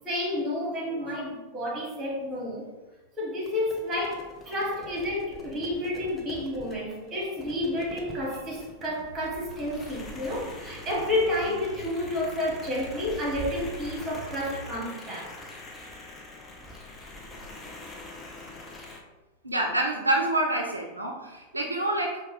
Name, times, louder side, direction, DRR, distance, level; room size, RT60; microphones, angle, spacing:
voice 1, 0.0-2.7 3.2-15.3, left 1 dB, 20° right, -2 dB, 1.3 m, -30 dB
sound 1, 2.2-2.3 4.4-8.0 8.4-8.7 9.1-9.8 10.7-10.9 11.2-11.5 12.9-15.5 16.4-18.9, right 3 dB, 5° right, 0.9 m, -49 dB
sound 2, 3.4-19.0, left 2 dB, 15° left, 0.5 m, -45 dB
sound 3, 9.0-14.7, right 1 dB, 90° left, 0.9 m, -46 dB
voice 2, 19.4-22.2, right 1 dB, 85° right, 1 dB, 0.4 m, -27 dB
4.5 x 2.2 x 3.1 m, 1.1 s
figure-of-eight pair, 90°, 0 cm